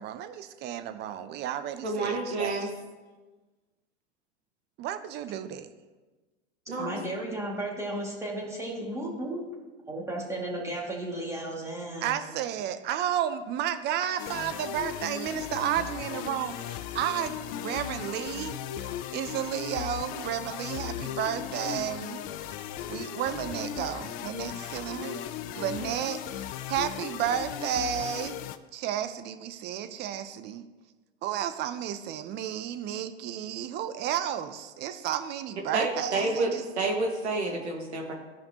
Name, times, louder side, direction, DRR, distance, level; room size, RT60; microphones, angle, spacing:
voice 1, 0.0-2.5 4.8-5.7 12.0-18.6 19.1-22.2 22.9-25.3 25.5-28.4 28.7-30.7 31.2-36.6, right 10 dB, 30° right, 11 dB, 0.6 m, -32 dB
voice 2, 1.8-2.7 6.7-6.9 35.7-36.5 36.8-38.1, right 2 dB, 75° right, 1 dB, 1.9 m, -29 dB
voice 3, 6.8-9.4 9.9-12.1, right 1 dB, 10° right, -3 dB, 2.3 m, -34 dB
sound 1, 14.2-28.6, left 11 dB, 25° left, 0.4 m, -37 dB
15.5 x 5.2 x 3.0 m, 1.2 s
hypercardioid pair, 105°, 33 cm